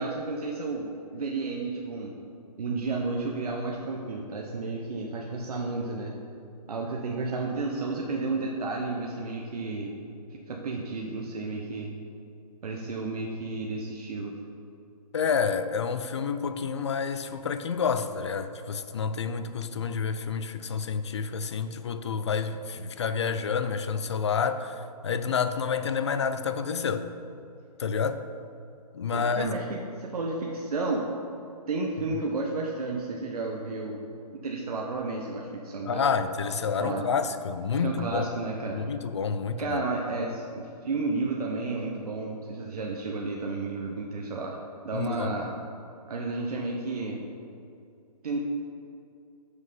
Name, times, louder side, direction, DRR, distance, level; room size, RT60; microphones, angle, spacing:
voice 1, 0.0-2.1 2.6-6.2 6.7-9.9 10.4-11.9 12.6-14.4 29.1-31.0 31.7-34.0 34.3-36.0 36.8-37.0 37.8-38.9 39.6-44.6 44.8-45.5 46.1-47.2 48.2-48.4, right 3 dB, 65° right, -1 dB, 0.9 m, -32 dB
voice 2, 15.1-27.1 27.8-28.2 28.9-29.5 32.1-32.2 35.8-38.3 38.7-39.8 44.9-45.3, left 6 dB, 45° left, 11 dB, 0.4 m, -29 dB
6.3 x 5.3 x 5.4 m, 2.6 s
hypercardioid pair, 170°, 20 cm